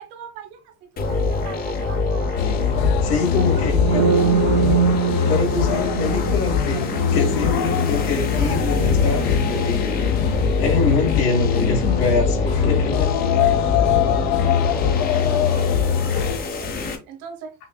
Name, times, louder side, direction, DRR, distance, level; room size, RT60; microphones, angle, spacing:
voice 1, 0.0-2.5 3.3-3.8 4.1-5.0 5.4-5.5 13.4-17.5, right 6 dB, 65° right, 1.2 m, -40 dB
sound 1, 1.0-17.0, left 3 dB, 20° left, 0.5 m, -26 dB
sound 2, 2.4-16.4, left 8 dB, 65° left, 0.6 m, -22 dB
voice 2, 3.0-4.2 5.3-10.3 10.6-13.1, left 4 dB, 90° left, 2.0 m, -25 dB
sound 3, 3.7-11.5, right 6 dB, 30° right, 0.6 m, -25 dB
5.5 x 2.6 x 2.2 m
supercardioid pair, 130°, 44 cm